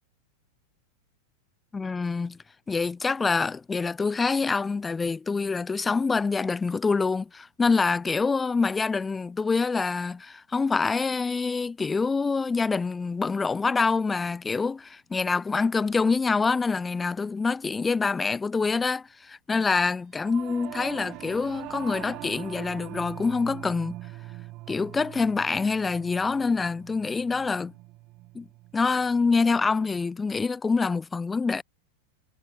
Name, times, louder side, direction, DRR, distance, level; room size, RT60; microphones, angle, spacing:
voice 1, 1.7-2.4 2.7-24.0 24.7-27.7 28.3-28.5 28.7-31.6, left 4 dB, 15° left, 0.6 m, -26 dB
Singing / Musical instrument, 20.1-29.7, right 19 dB, 40° right, 7.5 m, -43 dB
figure-of-eight pair, 90°, 0 cm